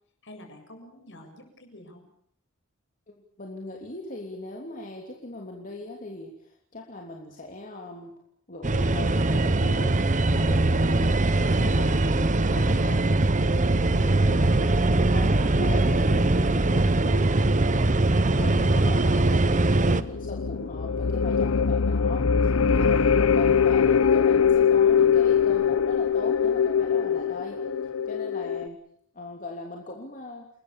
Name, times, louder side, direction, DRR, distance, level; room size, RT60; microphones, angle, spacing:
voice 1, 0.2-2.0 22.8-23.0, left 1 dB, 60° left, 4 dB, 7.6 m, -46 dB
voice 2, 3.4-8.1 8.5-10.0 10.3-13.1 13.5-27.6 28.1-28.8 29.1-30.5, left 2 dB, 40° left, 0 dB, 3.2 m, -39 dB
sound 1, 8.6-20.0, right 2 dB, 35° right, 1.0 m, -22 dB
sound 2, 18.3-28.7, left 6 dB, 80° left, 0.9 m, -23 dB
30.0 x 21.0 x 7.1 m, 0.66 s
head